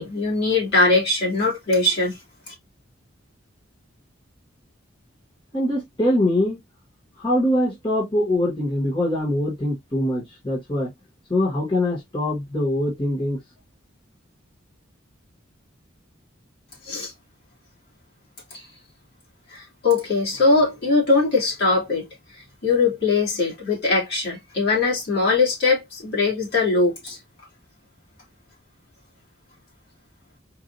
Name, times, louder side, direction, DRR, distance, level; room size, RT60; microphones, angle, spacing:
voice 1, 0.0-2.2 16.9-17.1 19.5-22.0 22.6-27.2, left 3 dB, 55° left, 2.9 m, -21 dB
voice 2, 5.5-6.6 7.2-10.9 11.3-13.4, left 1 dB, 25° left, 1.8 m, -23 dB
4.7 x 2.8 x 2.7 m
head